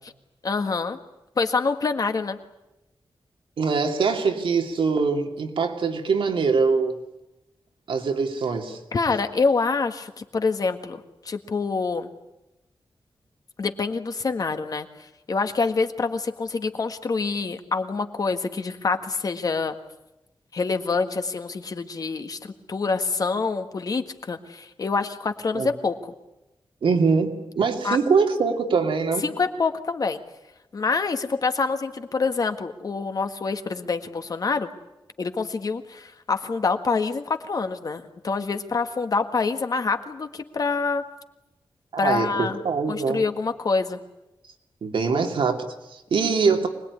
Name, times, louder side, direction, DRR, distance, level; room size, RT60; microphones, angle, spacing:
voice 1, 0.4-1.0 1.4-2.4 8.9-12.1 13.6-14.9 15.3-19.7 20.5-22.4 22.7-26.1 27.8-28.0 29.2-30.2 30.7-34.7 35.2-41.0 42.0-42.6 42.9-44.0, left 4 dB, 45° left, 7 dB, 1.7 m, -26 dB
voice 2, 3.6-6.9 7.9-8.8 25.5-25.7 26.8-29.3 41.9-43.2 44.8-46.7, right 5 dB, 80° right, 4 dB, 2.8 m, -23 dB
25.0 x 20.5 x 9.7 m, 0.94 s
wide cardioid pair, 155°, 9 cm